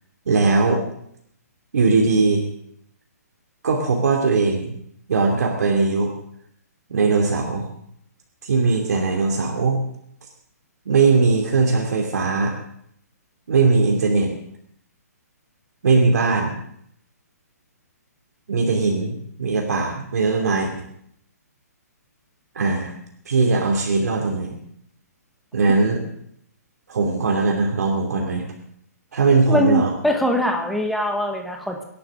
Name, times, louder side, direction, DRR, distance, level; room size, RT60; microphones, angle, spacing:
voice 1, 0.3-0.8 1.7-2.5 3.6-4.7 5.1-6.1 6.9-7.7 8.4-9.8 10.9-12.6 13.5-14.3 15.8-16.6 18.5-20.7 22.5-23.0 23.3-24.6 25.5-26.0 26.9-28.5 29.1-29.9, right 4 dB, 70° right, 0 dB, 2.8 m, -19 dB
voice 2, 29.5-31.8, equal, ahead, 2 dB, 1.4 m, -22 dB
25.0 x 11.5 x 3.8 m, 0.70 s
hypercardioid pair, 160°, 9 cm